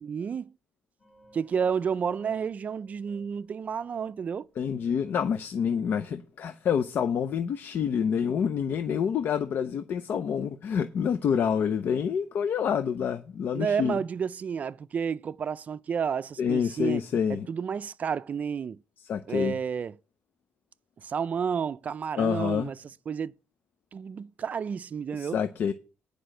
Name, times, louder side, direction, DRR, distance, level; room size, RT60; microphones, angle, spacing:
voice 1, 0.0-0.5 1.3-4.5 13.5-17.0 17.3-18.8 19.3-19.9 21.0-22.8 23.1-23.3 23.9-25.4, right 7 dB, 40° right, 0.4 m, -31 dB
sound 1, 1.0-6.3, equal, 15° left, 5.6 m, -58 dB
voice 2, 4.6-13.9 16.4-17.5 19.0-19.5 22.2-22.7 25.1-25.7, left 7 dB, 60° left, 0.6 m, -27 dB
10.0 x 5.1 x 7.6 m
cardioid pair, 135°, 4 cm